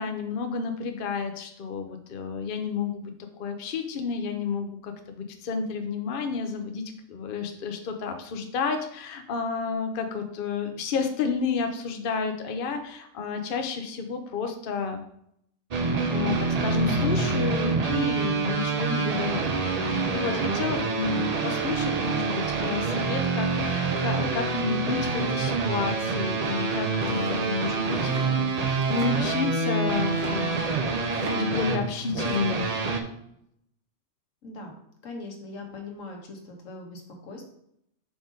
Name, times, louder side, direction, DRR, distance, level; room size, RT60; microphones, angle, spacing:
voice 1, 0.0-3.1 3.4-15.0 16.1-30.6 31.1-32.7, left 5 dB, 50° left, 6 dB, 0.7 m, -31 dB
sound 1, 15.7-33.0, right 4 dB, 45° right, 0.5 m, -27 dB
Domestic sounds home sounds, 26.8-31.6 31.9-32.5, right 1 dB, 75° right, 1.5 m, -42 dB
voice 2, 34.4-34.7 35.0-37.5, left 2 dB, 85° left, 1 dB, 1.5 m, -41 dB
5.0 x 3.8 x 5.0 m, 0.74 s
omnidirectional pair, 1.3 m